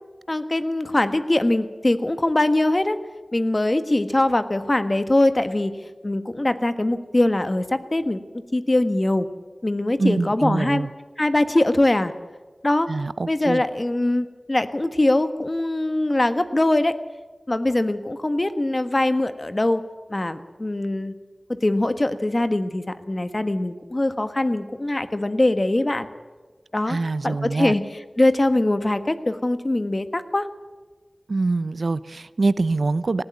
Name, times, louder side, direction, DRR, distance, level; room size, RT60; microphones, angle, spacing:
voice 1, 0.3-3.0 3.3-5.7 6.0-8.2 8.5-9.3 9.6-10.9 11.2-12.1 12.6-12.9 13.3-17.0 17.5-19.8 20.1-21.1 21.6-26.1 26.7-27.0 27.2-27.8 28.2-30.5, left 1 dB, 40° left, 10 dB, 1.4 m, -22 dB
voice 2, 10.0-10.9 12.9-13.6 26.9-27.7 31.3-33.2, right 3 dB, 80° right, 16 dB, 0.6 m, -24 dB
19.0 x 15.5 x 9.5 m, 1.3 s
wide cardioid pair, 45°, 0 cm